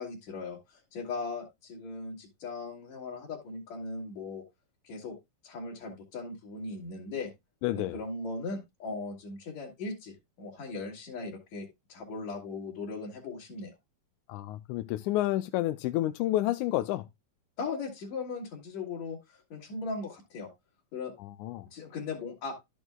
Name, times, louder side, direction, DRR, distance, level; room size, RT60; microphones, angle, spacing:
voice 1, 0.0-4.4 4.8-5.2 5.4-7.3 7.7-13.7 17.6-20.5 20.9-21.1 21.7-22.5, left 3 dB, 65° left, 3.1 m, -38 dB
voice 2, 7.6-8.0 14.3-17.0 21.2-21.7, left 15 dB, 80° left, 2.0 m, -30 dB
13.0 x 6.2 x 2.2 m
omnidirectional pair, 3.5 m